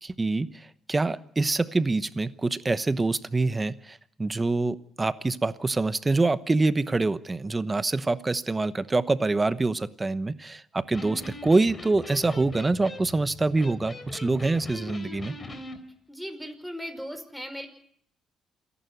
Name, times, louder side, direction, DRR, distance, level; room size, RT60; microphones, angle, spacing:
voice 1, 0.0-15.4, right 3 dB, 25° right, 14 dB, 1.0 m, -25 dB
Electric guitar, 10.8-15.8, left 2 dB, 30° left, 3.7 m, -41 dB
voice 2, 16.1-17.7, equal, ahead, 7 dB, 5.2 m, -37 dB
28.0 x 11.5 x 9.4 m, 0.65 s
supercardioid pair, 75°, 0 cm